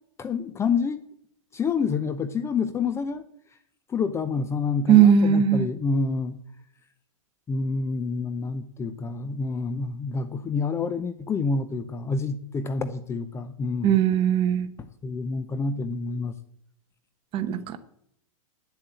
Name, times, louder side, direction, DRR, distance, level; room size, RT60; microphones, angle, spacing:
voice 1, 0.2-1.0 1.5-3.2 3.9-6.4 7.5-14.0 15.0-16.3, left 4 dB, 15° left, 12 dB, 0.6 m, -28 dB
voice 2, 4.9-5.7 13.8-14.7 17.3-17.9, right 8 dB, 30° right, 11 dB, 1.0 m, -19 dB
9.7 x 7.4 x 9.0 m, 0.69 s
hypercardioid pair, 140°, 18 cm